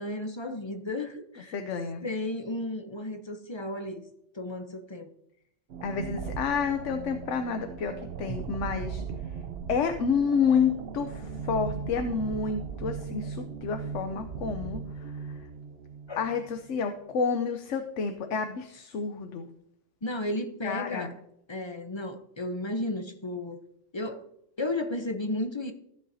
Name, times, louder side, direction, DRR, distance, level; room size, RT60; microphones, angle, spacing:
voice 1, 0.0-1.6 2.0-4.0 4.3-5.1 16.1-16.2 20.0-21.1 21.5-23.6 23.9-24.3 24.6-25.7, left 1 dB, 30° left, 0.6 m, -33 dB
voice 2, 1.5-2.0 5.8-9.0 9.7-15.5 16.1-19.5 20.6-21.1, left 6 dB, 75° left, 1.1 m, -29 dB
sound 1, 5.7-16.7, right 6 dB, 60° right, 0.8 m, -38 dB
14.0 x 7.8 x 2.7 m
omnidirectional pair, 1.3 m